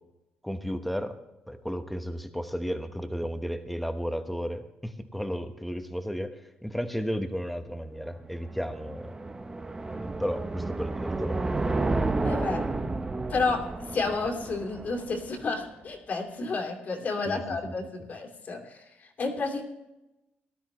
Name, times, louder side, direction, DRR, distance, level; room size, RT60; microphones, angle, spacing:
voice 1, 0.4-1.1 1.5-6.3 6.6-9.1 9.9-11.4 17.3-17.7, equal, ahead, 7 dB, 1.2 m, -33 dB
sound 1, 8.1-15.5, right 2 dB, 15° right, 0.9 m, -31 dB
voice 2, 12.2-12.6 13.3-19.6, left 4 dB, 45° left, 2 dB, 2.7 m, -31 dB
18.5 x 12.5 x 3.1 m, 0.96 s
cardioid pair, 125°, 4 cm